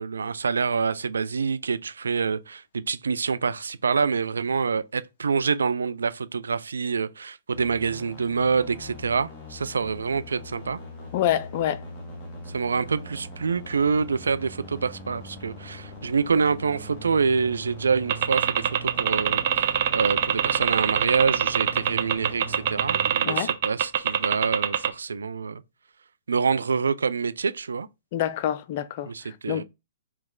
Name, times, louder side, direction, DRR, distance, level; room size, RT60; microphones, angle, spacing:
voice 1, 0.0-10.8 12.5-19.6 19.9-25.6 26.3-27.9 29.0-29.6, right 5 dB, 85° right, 0.4 m, -26 dB
sound 1, 7.5-23.1, right 1 dB, 30° left, 1.4 m, -41 dB
voice 2, 11.1-11.8 23.2-23.5 28.1-29.6, left 11 dB, 45° left, 0.4 m, -27 dB
sound 2, 18.1-24.9, right 9 dB, 50° right, 0.7 m, -23 dB
3.2 x 3.1 x 3.6 m
hypercardioid pair, 130°, 0 cm